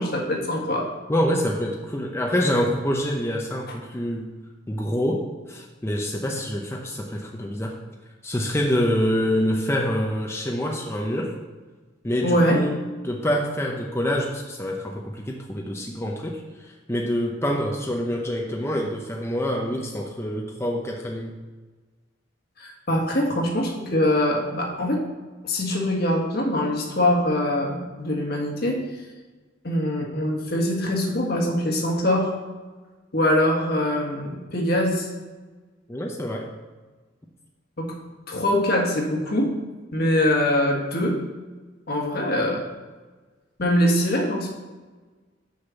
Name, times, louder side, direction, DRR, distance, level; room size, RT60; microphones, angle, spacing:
voice 1, 0.0-0.9 12.2-12.6 22.6-25.0 25.4-28.8 29.6-32.3 33.1-35.1 37.8-37.9 38.3-39.5 39.9-41.1 41.9-42.6 43.6-44.5, left 1 dB, 55° left, 0 dB, 1.6 m, -23 dB
voice 2, 1.1-4.3 4.7-7.8 8.2-11.3 12.0-21.3 35.9-36.5, equal, 15° left, 0 dB, 0.6 m, -26 dB
6.5 x 5.8 x 5.8 m, 1.3 s
head